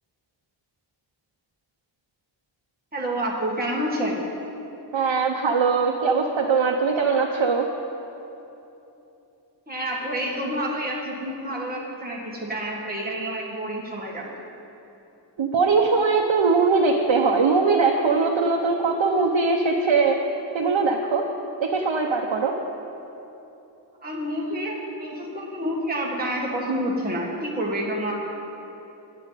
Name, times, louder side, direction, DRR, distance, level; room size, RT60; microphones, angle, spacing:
voice 1, 2.9-4.2 9.7-14.3 24.0-28.1, right 1 dB, 20° right, -3 dB, 1.9 m, -28 dB
voice 2, 4.9-7.7 15.4-20.2 20.5-21.2 21.6-22.5, right 4 dB, 75° right, 0 dB, 0.9 m, -21 dB
21.0 x 9.3 x 4.1 m, 3.0 s
wide cardioid pair, 95°, 45 cm